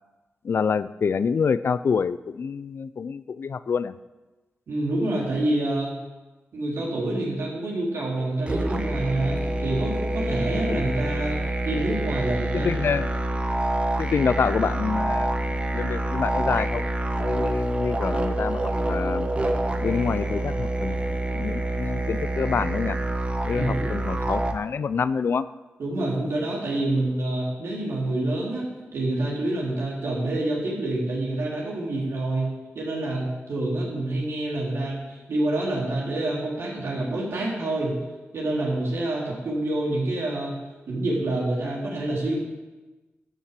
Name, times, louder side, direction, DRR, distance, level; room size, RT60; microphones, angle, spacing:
voice 1, 0.4-3.9 10.6-10.8 12.5-13.1 14.0-16.9 17.2-19.3 19.8-23.0 23.4-25.5, left 6 dB, 60° left, 15 dB, 0.5 m, -27 dB
voice 2, 4.7-5.9 6.5-11.4 11.6-12.7 23.5-23.8 25.8-38.0 38.3-40.6 40.9-42.3, right 2 dB, 80° right, -4 dB, 4.1 m, -27 dB
sound 1, 8.5-24.5, right 1 dB, 25° right, 1.1 m, -27 dB
12.5 x 7.3 x 7.6 m, 1.2 s
wide cardioid pair, 95°, 4 cm